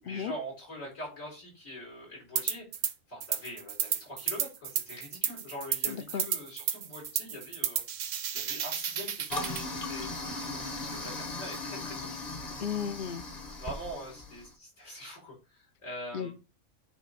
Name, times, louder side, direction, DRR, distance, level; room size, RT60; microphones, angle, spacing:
voice 1, 0.0-2.7 3.1-7.8 8.3-10.6 10.9-12.2 13.6-16.3, equal, 80° left, -3 dB, 5.2 m, -43 dB
sound 1, 2.4-2.9 3.2-9.6, right 8 dB, 70° right, 1.1 m, -32 dB
voice 2, 5.9-6.2 12.6-13.2 16.1-16.3, left 7 dB, 50° left, 10 dB, 0.7 m, -34 dB
Toilet flush, 9.3-14.5, left 2 dB, 35° left, 1.2 m, -38 dB
8.4 x 3.1 x 5.6 m, 0.29 s
omnidirectional pair, 1.4 m